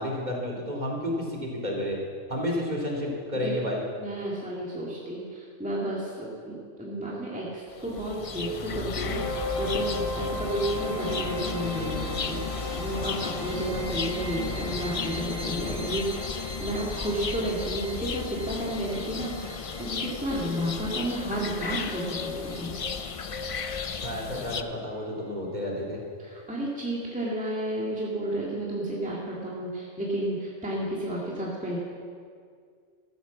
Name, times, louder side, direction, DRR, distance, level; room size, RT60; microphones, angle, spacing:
voice 1, 0.0-2.0 2.3-3.8 24.0-26.0, left 1 dB, 35° right, -2 dB, 2.6 m, -31 dB
voice 2, 4.0-22.7 26.2-31.8, right 1 dB, 5° right, -5 dB, 2.0 m, -32 dB
sound 1, 7.7-24.6, left 5 dB, 45° left, 0.4 m, -34 dB
sound 2, 9.0-24.0, left 1 dB, 20° left, 2.0 m, -38 dB
14.0 x 9.2 x 7.2 m, 2.1 s
omnidirectional pair, 1.3 m